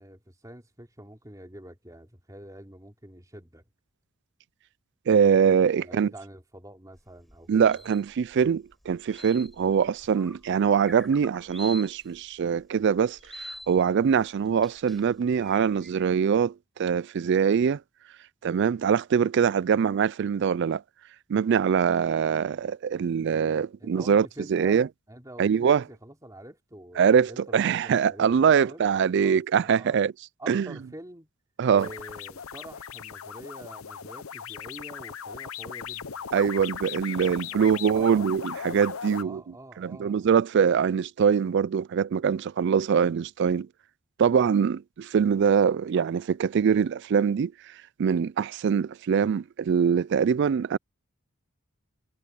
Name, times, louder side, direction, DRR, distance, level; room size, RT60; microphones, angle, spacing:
voice 1, 0.0-3.6 5.7-7.8 23.8-24.8 25.1-30.0 30.4-31.3 31.7-36.2 37.1-38.4 39.2-40.3, right 1 dB, 15° right, 3.2 m, -46 dB
voice 2, 5.1-6.1 7.5-17.8 18.4-20.8 21.3-24.9 25.4-25.8 27.0-30.1 30.5-30.7 31.6-31.9 36.3-39.4 39.8-43.7 44.2-50.8, right 7 dB, 50° right, 0.3 m, -23 dB
sound 1, 6.9-16.0, equal, ahead, 5.8 m, -46 dB
sound 2, 31.8-39.2, left 7 dB, 70° left, 0.7 m, -38 dB
head